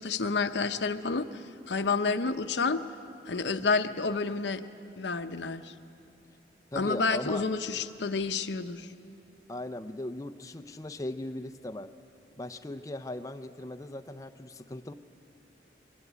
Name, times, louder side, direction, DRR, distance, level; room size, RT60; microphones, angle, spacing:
voice 1, 0.0-2.8 3.3-4.6 5.0-5.7 6.8-8.9, left 4 dB, 80° left, 9 dB, 0.8 m, -29 dB
voice 2, 6.7-7.4 9.5-11.9 12.4-14.9, left 1 dB, 20° left, 7 dB, 0.6 m, -38 dB
22.0 x 19.0 x 8.2 m, 2.6 s
head